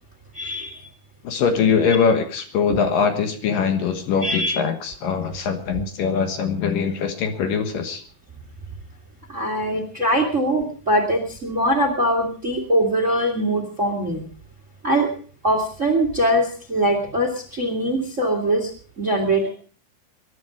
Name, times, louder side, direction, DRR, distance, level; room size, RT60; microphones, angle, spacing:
voice 1, 0.3-0.9 2.7-2.8 4.2-4.5 9.3-14.2 14.8-15.1 15.4-18.7 19.0-19.5, right 1 dB, 30° right, 6 dB, 1.6 m, -22 dB
voice 2, 1.2-8.0, left 6 dB, 65° left, 7 dB, 2.9 m, -22 dB
22.0 x 11.0 x 5.0 m, 0.43 s
omnidirectional pair, 4.6 m